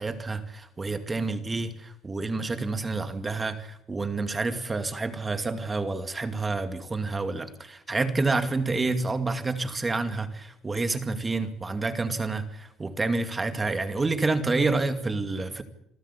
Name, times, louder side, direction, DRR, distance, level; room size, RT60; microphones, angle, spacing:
voice 1, 0.0-15.6, right 3 dB, 20° right, 2.3 m, -28 dB
27.5 x 13.0 x 8.5 m
cardioid pair, 110°, 0 cm